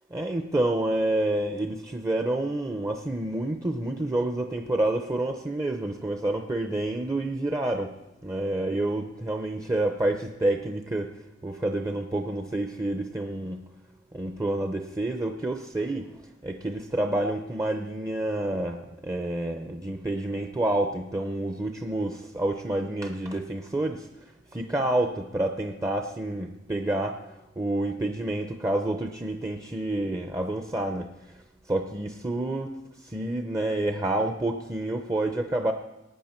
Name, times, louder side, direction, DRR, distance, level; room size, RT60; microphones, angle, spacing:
voice 1, 0.1-8.0 8.2-11.1 11.4-13.6 14.1-16.1 16.4-24.1 24.5-27.2 27.6-31.1 31.7-32.7 33.0-35.7, right 1 dB, 15° right, 5 dB, 0.6 m, -28 dB
19.5 x 9.1 x 4.4 m, 0.99 s
head